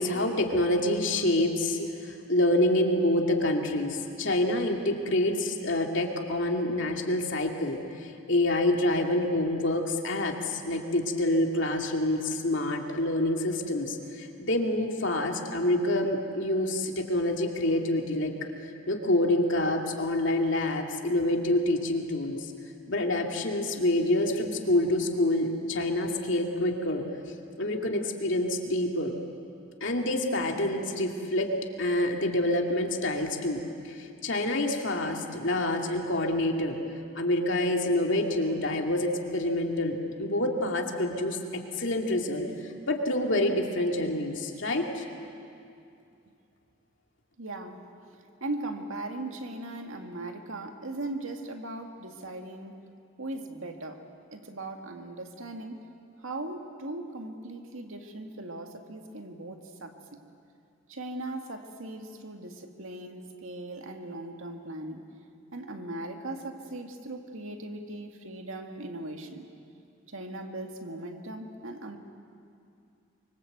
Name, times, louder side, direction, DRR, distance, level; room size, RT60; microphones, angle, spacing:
voice 1, 0.0-18.5 18.9-22.5 22.9-27.1 27.6-29.2 29.8-31.5 31.8-36.8 37.2-45.0, left 1 dB, 60° left, 2 dB, 2.4 m, -27 dB
voice 2, 47.4-47.9 48.4-52.8 53.2-54.0 54.3-55.8 56.2-60.2 60.9-65.1 65.5-69.5 70.1-72.0, right 2 dB, 75° right, 4 dB, 2.1 m, -39 dB
25.0 x 25.0 x 8.0 m, 2.5 s
head